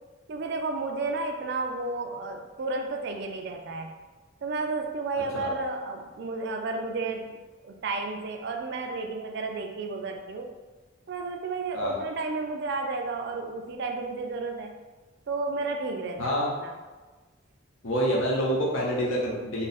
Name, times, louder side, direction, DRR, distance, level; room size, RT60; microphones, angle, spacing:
voice 1, 0.3-3.9 4.4-7.4 7.6-10.5 11.1-14.7 15.3-16.8, right 3 dB, 55° right, 4 dB, 0.4 m, -32 dB
voice 2, 16.2-16.5 17.8-19.7, equal, 65° left, -4 dB, 0.9 m, -27 dB
2.7 x 2.4 x 4.0 m, 1.3 s
head